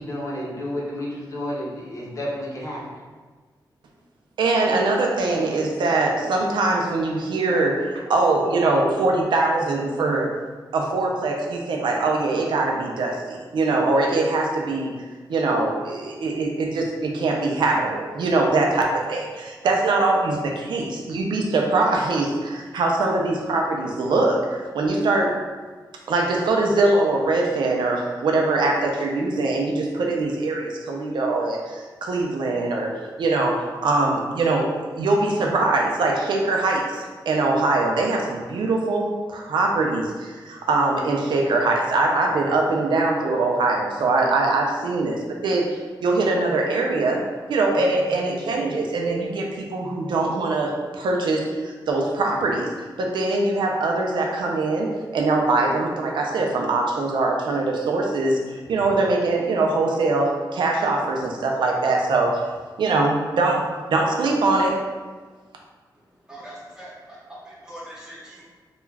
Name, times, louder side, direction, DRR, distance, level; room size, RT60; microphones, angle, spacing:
voice 1, 0.0-2.8, left 1 dB, 45° left, -5 dB, 0.6 m, -31 dB
voice 2, 4.4-10.3 10.7-14.9 15.3-25.3 26.1-32.9 33.2-47.2 47.5-52.7 53.0-62.4 62.8-64.8, right 2 dB, 85° right, 0 dB, 0.4 m, -22 dB
voice 3, 66.3-68.4, right 1 dB, 10° right, -7 dB, 0.7 m, -41 dB
2.3 x 2.2 x 3.2 m, 1.4 s
wide cardioid pair, 160°, 8 cm